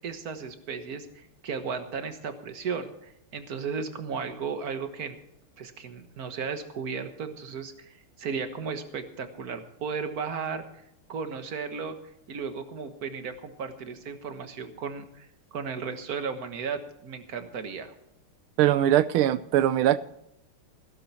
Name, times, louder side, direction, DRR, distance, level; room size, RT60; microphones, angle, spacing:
voice 1, 0.0-5.2 5.6-10.8 11.1-12.0 12.3-17.9, right 5 dB, 50° right, 1.7 m, -35 dB
voice 2, 18.6-20.0, right 12 dB, 80° right, 1.6 m, -21 dB
15.5 x 13.0 x 4.3 m
omnidirectional pair, 2.4 m